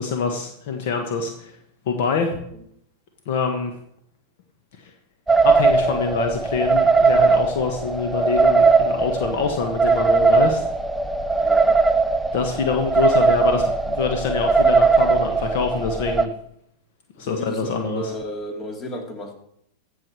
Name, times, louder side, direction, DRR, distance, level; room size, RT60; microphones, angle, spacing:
voice 1, 0.0-1.6 1.9-2.4 3.3-3.7 4.8-4.9 5.4-10.7 11.4-11.5 12.3-16.3 17.2-18.1, left 5 dB, 65° left, 5 dB, 1.4 m, -25 dB
sound 1, 5.3-16.3, right 4 dB, 5° right, 0.7 m, -19 dB
voice 2, 11.4-11.8 17.2-19.4, left 1 dB, 30° left, 4 dB, 2.5 m, -33 dB
15.5 x 7.1 x 4.7 m, 0.72 s
hypercardioid pair, 105°, 0 cm